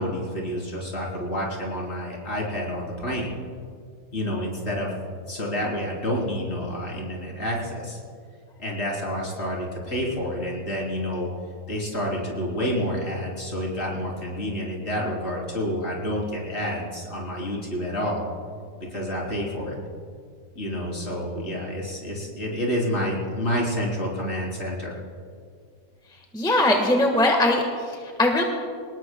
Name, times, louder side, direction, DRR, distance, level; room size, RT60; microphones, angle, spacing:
voice 1, 0.0-3.4 4.1-4.9 5.3-8.0 8.6-11.3 11.7-18.3 18.9-19.8 20.6-25.0, equal, 45° left, -3 dB, 4.0 m, -29 dB
voice 2, 26.3-28.4, left 1 dB, 5° left, 1 dB, 1.4 m, -21 dB
24.5 x 19.5 x 2.3 m, 2.1 s
omnidirectional pair, 1.6 m